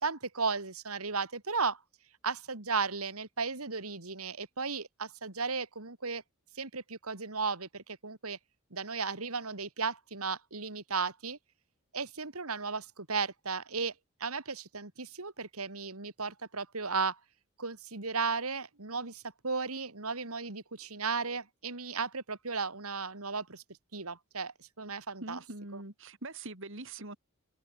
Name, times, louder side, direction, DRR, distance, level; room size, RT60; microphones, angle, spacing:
voice 1, 0.0-1.8 2.2-6.2 6.5-8.4 8.7-11.4 11.9-13.9 14.2-17.2 17.6-23.6 23.9-25.4, right 4 dB, 90° right, 3.1 m, -35 dB
voice 2, 25.2-27.2, right 2 dB, 60° right, 4.1 m, -43 dB
head